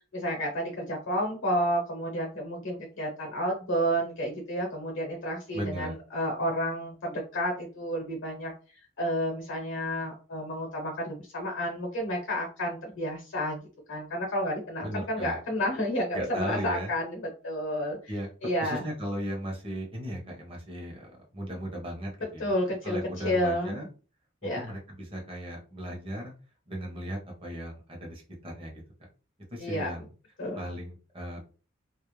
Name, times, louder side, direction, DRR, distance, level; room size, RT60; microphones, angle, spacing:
voice 1, 0.1-8.5 9.0-13.6 13.9-18.0 18.4-18.8 22.4-23.0 23.2-23.8 24.4-24.7 29.6-29.9 30.4-30.6, equal, 65° left, 0 dB, 0.8 m, -30 dB
voice 2, 5.5-5.9 14.8-15.4 16.1-16.9 18.1-18.3 18.6-22.5 22.8-23.9 24.4-26.3 26.7-28.8 29.5-30.1 30.6-31.4, equal, 25° right, 0 dB, 0.8 m, -36 dB
2.3 x 2.0 x 3.0 m, 0.36 s
head